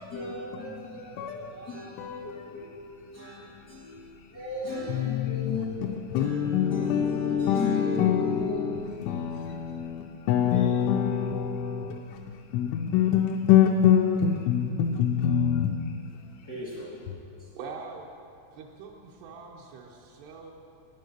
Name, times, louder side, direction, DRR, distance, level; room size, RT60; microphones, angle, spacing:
voice 1, 0.1-9.2 9.6-9.8 10.5-10.7 16.4-17.0 17.4-17.5, left 3 dB, 65° left, -9 dB, 1.0 m, -36 dB
voice 2, 1.2-1.5 2.0-2.3 4.9-16.3, left 9 dB, 85° left, 2 dB, 2.8 m, -25 dB
voice 3, 17.5-18.1 18.5-20.5, right 5 dB, 85° right, -2 dB, 2.4 m, -43 dB
9.1 x 9.1 x 6.6 m, 2.6 s
omnidirectional pair, 5.6 m